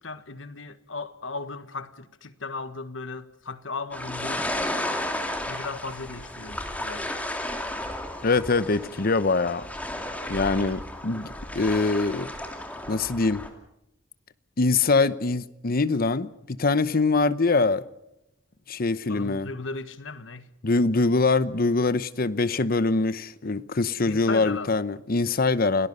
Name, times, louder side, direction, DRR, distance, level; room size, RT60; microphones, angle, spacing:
voice 1, 0.0-4.5 5.5-7.1 19.1-20.5 24.0-24.8, left 3 dB, 80° left, 1.5 m, -36 dB
sound 1, 3.9-13.5, left 1 dB, 10° left, 2.8 m, -33 dB
voice 2, 8.2-9.7 10.3-12.3 12.9-13.5 14.6-17.8 18.7-19.5 20.6-25.9, left 3 dB, 50° left, 0.9 m, -23 dB
29.0 x 18.5 x 5.5 m
head